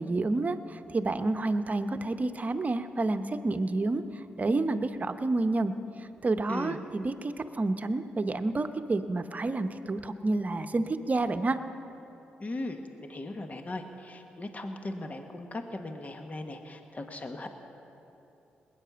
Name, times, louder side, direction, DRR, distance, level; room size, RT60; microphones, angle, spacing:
voice 1, 0.0-5.7 6.0-11.6, right 2 dB, 40° right, 9 dB, 0.9 m, -29 dB
voice 2, 12.4-17.5, left 2 dB, 35° left, 5 dB, 1.4 m, -38 dB
20.0 x 9.5 x 6.9 m, 3.0 s
supercardioid pair, 45°, 4 cm